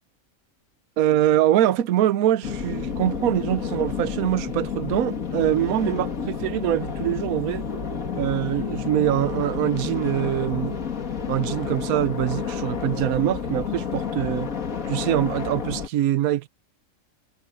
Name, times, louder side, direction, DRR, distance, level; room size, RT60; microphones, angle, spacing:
voice 1, 1.0-7.7 8.1-10.8 11.3-14.5 14.9-16.5, right 12 dB, 80° right, 1.2 m, -24 dB
sound 1, 2.4-15.9, left 6 dB, 70° left, 2.4 m, -30 dB
omnidirectional pair, 1.5 m